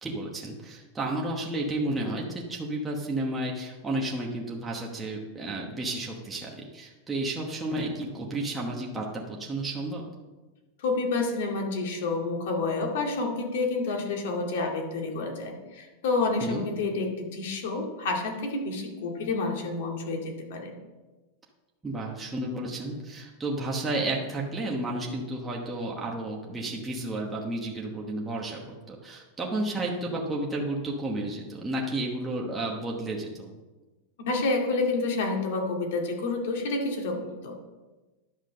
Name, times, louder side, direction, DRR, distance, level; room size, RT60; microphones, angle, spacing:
voice 1, 0.0-10.0 16.4-16.6 21.8-33.5, right 2 dB, 10° right, -2 dB, 1.1 m, -32 dB
voice 2, 10.8-20.7 34.3-37.7, left 3 dB, 65° left, 1 dB, 2.3 m, -29 dB
11.0 x 6.2 x 6.4 m, 1.2 s
supercardioid pair, 165°, 0 cm